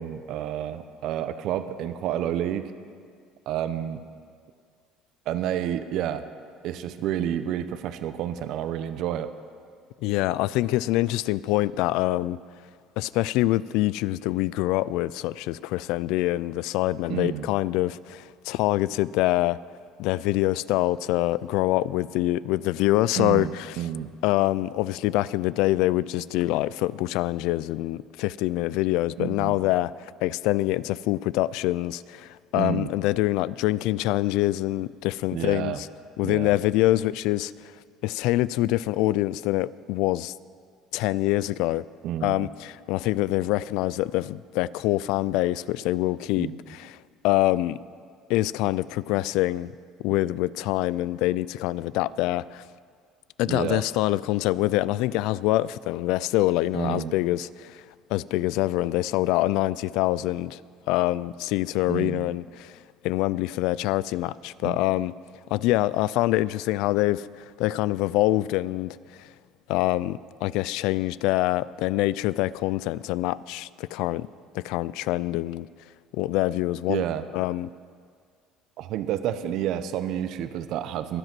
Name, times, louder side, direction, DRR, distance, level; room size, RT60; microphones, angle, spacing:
voice 1, 0.0-2.7 3.5-4.0 5.3-6.3 6.6-9.3 17.1-17.5 23.2-24.1 29.2-29.6 32.5-32.9 35.3-35.8 36.2-36.6 42.0-42.5 46.4-46.5 53.5-53.8 56.7-57.1 61.9-62.3 64.6-64.8 76.9-77.3 78.8-81.2, right 10 dB, 60° right, 0.7 m, -29 dB
voice 2, 10.0-12.4 13.0-19.6 20.0-23.7 24.2-35.9 36.2-37.5 38.0-40.3 40.9-41.8 42.2-47.0 47.2-47.8 48.3-49.7 50.0-52.6 53.4-57.8 58.1-60.6 60.9-62.8 63.0-65.1 65.5-67.2 67.6-69.3 69.7-74.3 74.5-75.7 76.1-77.0 77.3-77.7, left 16 dB, 75° left, 0.3 m, -25 dB
22.0 x 8.0 x 6.0 m
cardioid pair, 140°, 0 cm